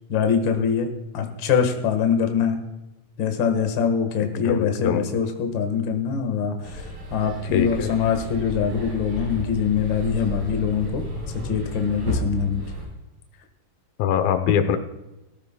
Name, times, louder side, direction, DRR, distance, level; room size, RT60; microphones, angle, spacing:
voice 1, 0.1-0.9 1.1-2.6 3.2-6.5 7.1-11.0 11.5-12.6, left 7 dB, 50° left, 5 dB, 1.5 m, -23 dB
voice 2, 4.4-5.0 7.5-8.0 14.0-14.8, left 8 dB, 85° left, 8 dB, 2.6 m, -22 dB
sound 1, 6.6-12.8, equal, 65° right, 6.5 m, -32 dB
18.5 x 14.5 x 2.2 m, 0.99 s
omnidirectional pair, 4.1 m